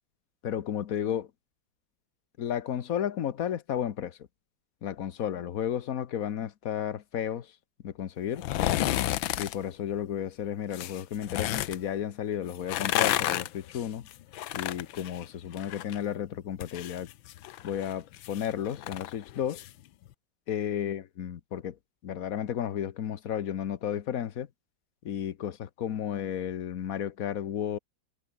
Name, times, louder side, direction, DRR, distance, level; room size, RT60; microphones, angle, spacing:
voice 1, 0.4-1.3 2.4-4.2 4.8-7.6 7.8-8.5 9.3-14.1 14.5-17.1 17.6-19.6 20.5-21.8 22.0-24.5 25.0-27.8, left 9 dB, 55° left, 1.3 m, -33 dB
sound 1, 8.3-9.6 10.7-11.8 12.5-16.0 16.3-19.7 20.1-20.2, left 14 dB, 85° left, 1.6 m, -31 dB
omnidirectional pair, 2.1 m